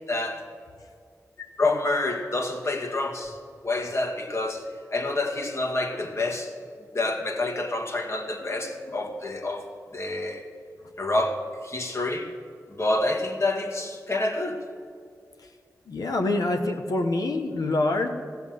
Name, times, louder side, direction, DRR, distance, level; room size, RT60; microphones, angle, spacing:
voice 1, 0.1-0.4 1.6-3.4 3.6-4.6 4.9-6.5 6.9-9.7 9.9-10.5 11.0-12.3 12.7-14.6, left 2 dB, 45° left, 3 dB, 1.9 m, -28 dB
voice 2, 15.9-18.1, left 2 dB, 75° left, 5 dB, 1.0 m, -25 dB
16.0 x 7.0 x 7.9 m, 2.2 s
cardioid pair, 45°, 6 cm